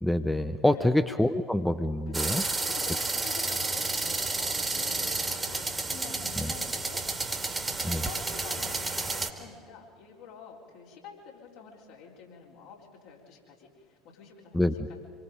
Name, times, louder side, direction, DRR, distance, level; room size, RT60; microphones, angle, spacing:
voice 1, 0.0-2.4 6.4-6.5 7.8-8.0 14.5-14.7, left 1 dB, 5° left, 10 dB, 0.8 m, -26 dB
sound 1, 2.1-9.3, right 3 dB, 15° right, 2.1 m, -31 dB
voice 2, 2.3-7.0 7.7-15.0, left 6 dB, 60° left, -2 dB, 4.0 m, -48 dB
26.5 x 22.5 x 5.1 m, 2.1 s
figure-of-eight pair, 65°, 0 cm